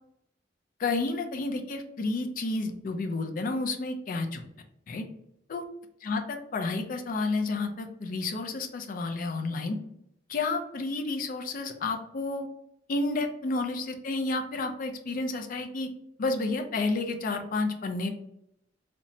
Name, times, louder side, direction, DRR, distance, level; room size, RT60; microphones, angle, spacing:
voice 1, 0.8-4.4 4.9-5.1 5.5-5.6 6.0-9.8 10.3-12.5 12.9-15.9 16.2-18.1, left 3 dB, 45° left, 5 dB, 0.4 m, -30 dB
2.9 x 2.1 x 2.6 m, 0.78 s
head